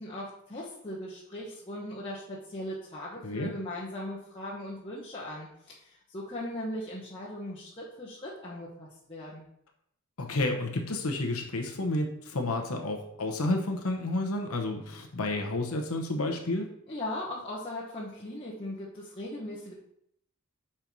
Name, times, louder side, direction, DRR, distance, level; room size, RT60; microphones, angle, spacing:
voice 1, 0.0-9.4 16.9-19.7, left 1 dB, 25° left, -7 dB, 1.1 m, -39 dB
voice 2, 10.2-16.7, left 2 dB, 70° left, 3 dB, 0.9 m, -30 dB
5.3 x 4.4 x 6.0 m, 0.73 s
head